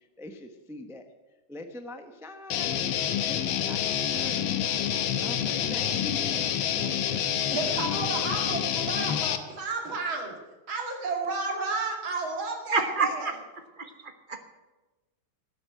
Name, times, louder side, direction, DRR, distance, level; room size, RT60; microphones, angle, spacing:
voice 1, 0.2-1.0 1.5-3.0 3.3-4.7 5.2-6.5 6.8-7.2 7.5-7.6, left 1 dB, 5° right, 7 dB, 0.3 m, -42 dB
Guitar, 2.5-9.4, left 9 dB, 85° left, 1.7 m, -28 dB
voice 2, 7.5-10.4 10.7-13.3, right 3 dB, 80° right, 2 dB, 3.0 m, -32 dB
voice 3, 12.7-13.3 13.8-14.4, right 4 dB, 35° right, 7 dB, 1.0 m, -29 dB
12.5 x 8.1 x 9.0 m, 1.2 s
omnidirectional pair, 2.1 m